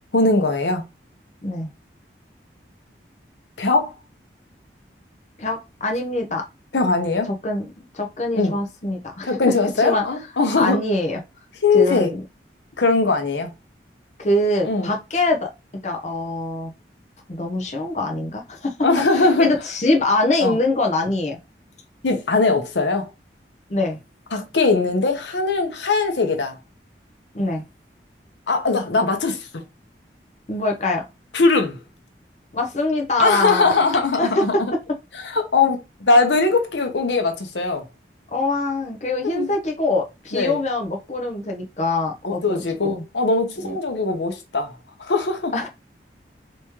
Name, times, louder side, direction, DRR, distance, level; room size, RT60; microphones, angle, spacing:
voice 1, 0.1-0.9 3.6-3.9 6.7-7.3 8.3-8.5 9.2-10.8 11.6-12.1 12.8-13.5 14.6-14.9 18.8-19.5 20.4-20.6 22.0-23.1 24.3-26.6 28.5-29.5 31.3-31.8 33.2-34.7 35.2-37.8 39.2-39.5 40.3-40.6 42.2-44.7 45.0-45.5, left 3 dB, 85° left, 0.8 m, -20 dB
voice 2, 5.4-6.4 7.4-9.3 9.8-10.0 10.6-11.2 11.7-12.2 14.2-15.5 15.8-16.7 17.3-18.7 19.1-21.4 23.7-24.0 27.3-27.6 30.5-31.0 32.5-33.8 34.2-34.4 38.3-43.0 43.6-43.8 45.5-45.7, left 2 dB, 40° left, 0.7 m, -23 dB
3.5 x 3.0 x 2.9 m
head